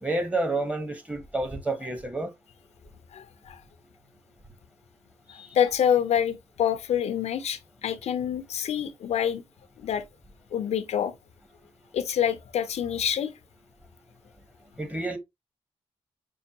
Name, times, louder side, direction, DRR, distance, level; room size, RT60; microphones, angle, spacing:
voice 1, 0.0-2.3 5.4-5.5 14.8-15.2, right 2 dB, 10° right, 1.0 m, -29 dB
voice 2, 3.1-3.6 5.5-9.4 9.8-10.0 10.5-11.1 11.9-13.3, left 9 dB, 75° left, 0.5 m, -26 dB
5.3 x 2.3 x 2.7 m
cardioid pair, 70°, 11 cm